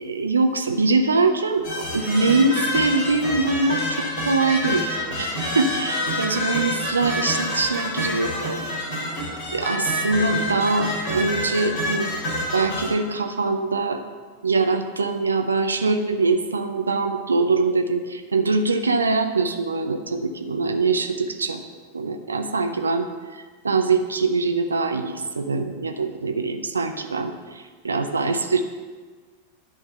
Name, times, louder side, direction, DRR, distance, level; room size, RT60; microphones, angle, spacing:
voice 1, 0.0-8.6 9.5-12.2 12.5-14.0 14.4-21.6 21.9-23.1 23.3-28.6, right 3 dB, 75° right, 6 dB, 0.5 m, -23 dB
sound 1, 1.6-12.9, left 1 dB, 40° left, 2.6 m, -27 dB
10.5 x 3.6 x 6.8 m, 1.4 s
figure-of-eight pair, 90°, 0 cm